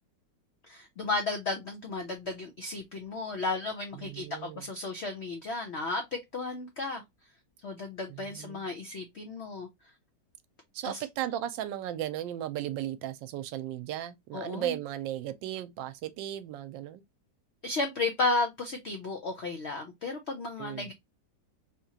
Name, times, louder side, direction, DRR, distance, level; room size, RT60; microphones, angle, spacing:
voice 1, 0.7-7.0 7.6-9.7 10.8-11.0 14.3-14.8 17.6-20.9, left 3 dB, 90° left, 0.5 m, -33 dB
voice 2, 3.9-4.7 8.1-8.7 10.7-17.0 20.6-20.9, right 12 dB, 85° right, 1.3 m, -36 dB
3.5 x 2.9 x 2.7 m
omnidirectional pair, 2.0 m